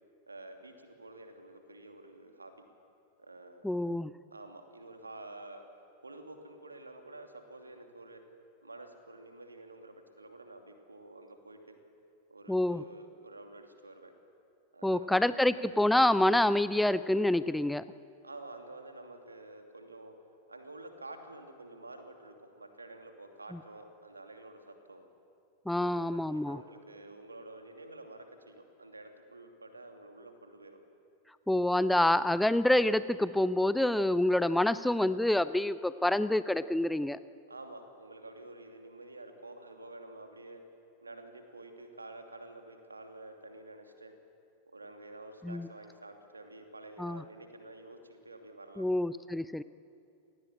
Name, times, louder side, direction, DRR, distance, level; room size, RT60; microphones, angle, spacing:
voice 1, 0.3-2.5 3.2-3.6 4.3-5.6 6.0-8.2 8.6-11.8 12.3-14.1 14.7-15.5 18.2-20.2 20.5-25.1 25.8-30.8 37.5-40.6 41.0-44.1 44.7-48.9, right 2 dB, 80° right, 4 dB, 2.8 m, -49 dB
voice 2, 3.6-4.1 12.5-12.8 14.8-17.8 25.7-26.6 31.5-37.2 45.4-45.7 47.0-47.2 48.8-49.6, left 1 dB, 5° left, 15 dB, 0.6 m, -27 dB
28.5 x 19.0 x 8.8 m, 2.5 s
figure-of-eight pair, 90°, 0 cm